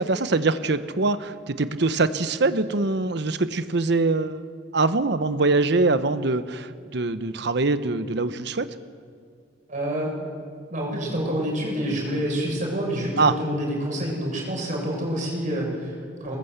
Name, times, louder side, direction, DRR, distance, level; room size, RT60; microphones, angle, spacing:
voice 1, 0.0-8.8 13.2-13.4, right 3 dB, 65° right, 12 dB, 1.0 m, -23 dB
voice 2, 9.7-10.1 10.7-16.4, equal, 45° right, -2 dB, 7.2 m, -27 dB
22.5 x 20.0 x 8.1 m, 2.2 s
head